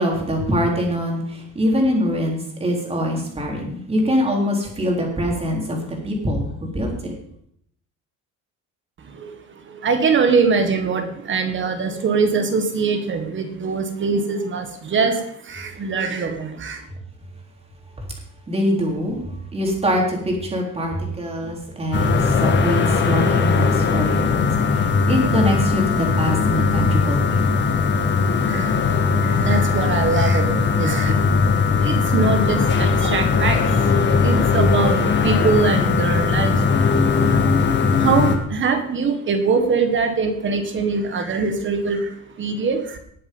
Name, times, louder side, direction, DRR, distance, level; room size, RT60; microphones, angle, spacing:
voice 1, 0.0-7.2 18.0-18.1 18.5-19.2 19.5-27.4, equal, 20° right, 0 dB, 3.8 m, -23 dB
voice 2, 9.7-16.9 28.5-28.9 29.2-31.5 31.8-37.4 37.9-43.0, right 4 dB, 40° right, 7 dB, 1.7 m, -23 dB
sound 1, 21.9-38.4, left 5 dB, 35° left, 1.8 m, -19 dB
19.0 x 7.7 x 5.5 m, 0.68 s
cardioid pair, 155°, 31 cm